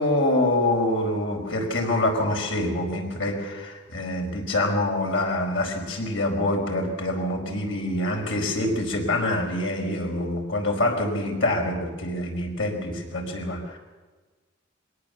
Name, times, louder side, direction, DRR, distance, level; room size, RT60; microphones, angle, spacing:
voice 1, 0.0-13.8, left 1 dB, 85° left, 1 dB, 5.0 m, -25 dB
23.5 x 18.0 x 7.1 m, 1.3 s
head